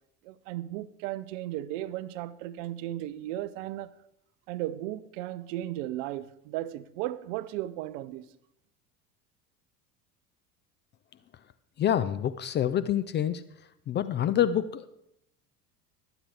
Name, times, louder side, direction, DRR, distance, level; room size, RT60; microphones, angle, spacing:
voice 1, 0.2-3.9 4.5-8.3, right 14 dB, 55° right, 0.8 m, -35 dB
voice 2, 11.8-13.4 13.9-14.9, left 10 dB, 25° left, 0.5 m, -27 dB
21.5 x 8.1 x 3.5 m
figure-of-eight pair, 70°, 47 cm